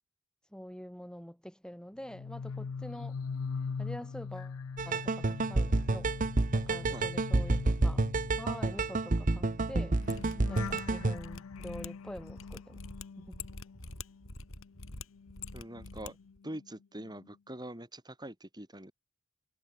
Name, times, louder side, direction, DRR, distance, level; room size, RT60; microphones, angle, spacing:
voice 1, 0.5-3.1 3.8-4.6 4.8-6.1 6.5-8.1 8.4-10.0 10.5-12.8 13.2-13.5, equal, 5° left, 4.6 m, -46 dB
sound 1, 2.0-14.3 14.6-16.7 17.0-17.3, left 5 dB, 90° left, 0.5 m, -43 dB
sound 2, 4.8-11.2, right 2 dB, 40° right, 0.8 m, -29 dB
voice 2, 6.6-7.2 15.5-16.2 16.4-18.9, right 1 dB, 20° right, 6.1 m, -44 dB
Mechanisms, 10.0-16.1 16.4-16.5, left 3 dB, 70° left, 6.4 m, -46 dB
head